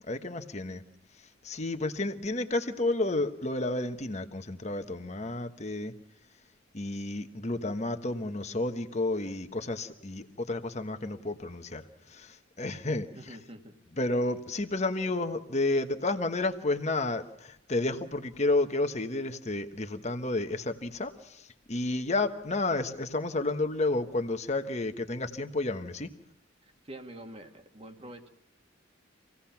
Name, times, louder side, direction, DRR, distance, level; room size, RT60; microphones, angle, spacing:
voice 1, 0.1-0.8 1.4-5.9 6.7-13.1 14.0-26.1, left 2 dB, 35° left, 7 dB, 1.3 m, -31 dB
voice 2, 13.2-13.8 26.6-28.3, right 1 dB, 30° right, 5 dB, 1.8 m, -46 dB
26.5 x 17.5 x 5.9 m, 0.73 s
head